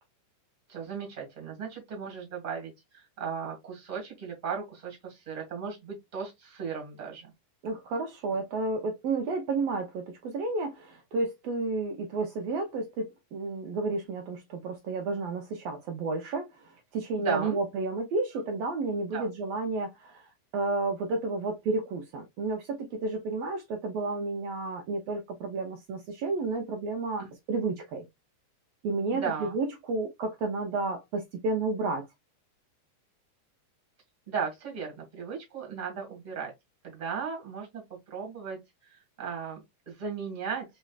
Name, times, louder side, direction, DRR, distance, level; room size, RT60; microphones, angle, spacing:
voice 1, 0.7-7.3 17.2-17.6 19.1-19.3 27.2-27.3 29.1-29.5 34.3-36.5 36.8-37.8 38.1-38.6 38.8-40.6, right 6 dB, 20° right, 1.2 m, -36 dB
voice 2, 7.6-28.0 28.8-32.1, right 3 dB, 85° right, 1.4 m, -31 dB
5.1 x 3.2 x 2.3 m
omnidirectional pair, 3.7 m